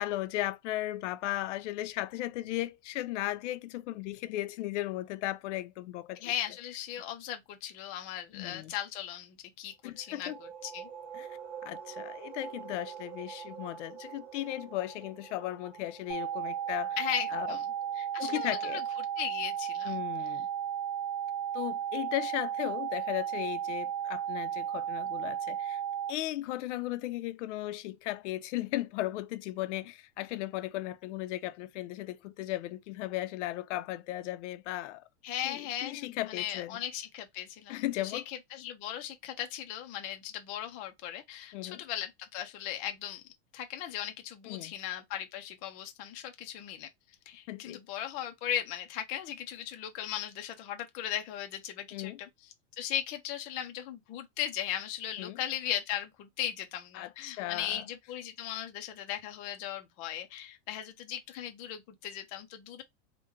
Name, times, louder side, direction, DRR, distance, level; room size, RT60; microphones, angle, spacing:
voice 1, 0.0-6.3 8.3-8.7 9.8-10.4 11.1-11.3 11.6-17.0 17.3-17.6 18.2-18.8 19.8-20.5 21.5-25.8 26.1-35.0 35.4-36.8 37.7-38.2 41.5-41.8 44.4-44.7 47.5-47.8 51.9-52.2 55.2-55.4 56.9-57.9, left 15 dB, 80° left, 0.5 m, -36 dB
voice 2, 6.2-10.9 17.0-17.7 18.0-20.0 35.2-43.2 43.5-46.9 47.3-52.3 52.8-62.8, left 11 dB, 25° left, 0.3 m, -37 dB
sound 1, 9.9-19.4, right 8 dB, 30° right, 0.8 m, -47 dB
sound 2, 16.1-26.1, right 9 dB, 70° right, 1.7 m, -34 dB
3.5 x 2.1 x 3.0 m
supercardioid pair, 165°, 35 cm